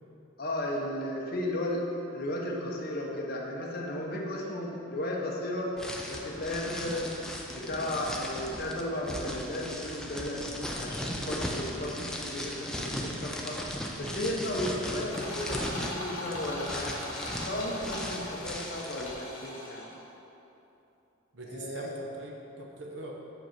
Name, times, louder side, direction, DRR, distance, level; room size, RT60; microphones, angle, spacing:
voice 1, 0.4-1.8 2.1-5.7 6.1-7.1 7.5-10.4 10.8-12.0 12.2-13.6 14.0-16.9 17.4-19.9 21.5-21.9, left 1 dB, 45° left, -2 dB, 0.7 m, -34 dB
sound 1, 5.8-19.1, equal, 5° left, 0.3 m, -37 dB
sound 2, 15.1-20.0, left 1 dB, 60° left, 1.2 m, -40 dB
voice 2, 21.3-23.1, right 2 dB, 60° right, -1 dB, 0.8 m, -43 dB
5.2 x 5.0 x 4.5 m, 2.9 s
head